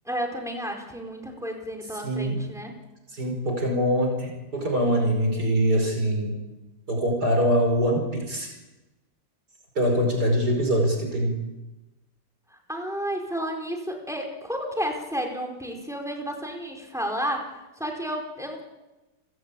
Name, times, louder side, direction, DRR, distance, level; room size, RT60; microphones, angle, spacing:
voice 1, 0.0-2.7 12.5-18.6, equal, ahead, 2 dB, 4.8 m, -32 dB
voice 2, 2.0-2.4 3.1-6.4 6.9-8.5 9.8-11.4, equal, 70° right, 2 dB, 5.6 m, -23 dB
30.0 x 17.0 x 8.5 m, 1.1 s
omnidirectional pair, 1.8 m